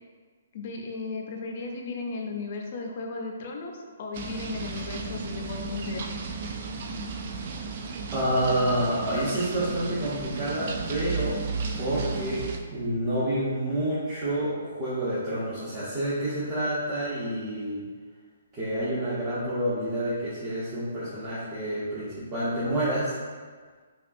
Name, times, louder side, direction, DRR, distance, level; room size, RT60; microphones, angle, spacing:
voice 1, 0.5-6.0, left 3 dB, 45° left, 1 dB, 0.5 m, -35 dB
sound 1, 4.1-12.6, right 4 dB, 45° right, 0.3 m, -35 dB
voice 2, 8.1-11.4 11.8-17.9 18.5-23.1, right 1 dB, 20° right, -11 dB, 0.8 m, -28 dB
sound 2, 10.7-13.5, right 5 dB, 60° right, 1.4 m, -34 dB
5.2 x 2.3 x 2.6 m, 1.5 s
hypercardioid pair, 165°, 0 cm